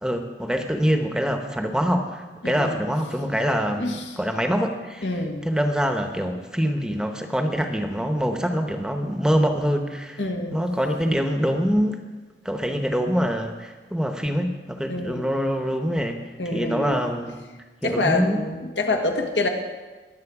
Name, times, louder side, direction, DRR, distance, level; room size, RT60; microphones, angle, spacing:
voice 1, 0.0-5.1 5.4-10.2 10.5-12.0 12.4-16.2 16.5-17.4 17.8-18.4, equal, 5° right, 5 dB, 0.8 m, -24 dB
voice 2, 2.4-2.8 3.3-4.0 5.0-5.5 10.2-10.6 14.9-15.2 16.4-17.1 17.8-19.5, left 2 dB, 90° left, 2 dB, 1.7 m, -27 dB
22.0 x 7.6 x 4.8 m, 1.3 s
head